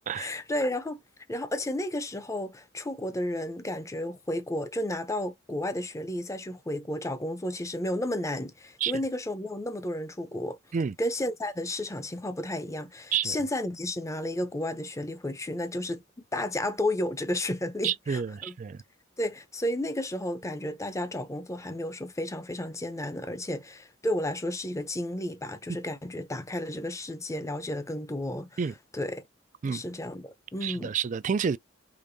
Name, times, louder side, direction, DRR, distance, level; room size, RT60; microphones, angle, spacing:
voice 1, 0.1-1.0 1.3-10.6 11.0-18.5 19.2-28.5 28.9-29.2 29.6-31.0, left 1 dB, 15° left, 0.7 m, -32 dB
voice 2, 17.8-18.8 28.6-28.7 29.6-29.8 30.6-31.6, right 7 dB, 35° right, 0.3 m, -29 dB
5.1 x 3.6 x 2.7 m
head